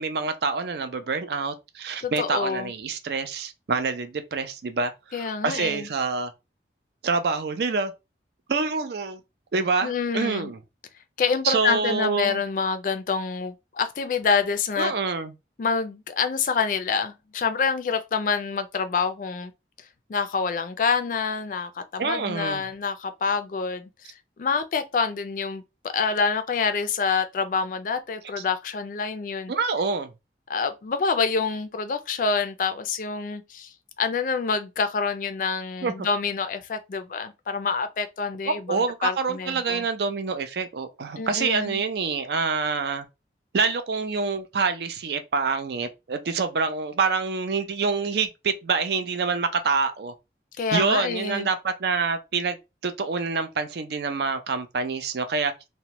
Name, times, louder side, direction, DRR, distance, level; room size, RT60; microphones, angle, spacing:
voice 1, 0.0-6.3 7.0-7.9 8.5-9.2 9.5-10.6 11.4-12.4 14.8-15.3 22.0-22.7 29.5-30.1 35.8-35.9 38.5-43.0 43.5-50.1 50.7-52.6 52.8-55.5, right 4 dB, 65° right, 0.4 m, -26 dB
voice 2, 2.0-2.7 5.1-5.9 9.8-10.5 11.2-14.9 15.6-19.5 19.8-29.5 30.5-39.8 41.2-41.8 50.6-51.5, left 5 dB, 45° left, 0.3 m, -27 dB
2.7 x 2.1 x 2.9 m
head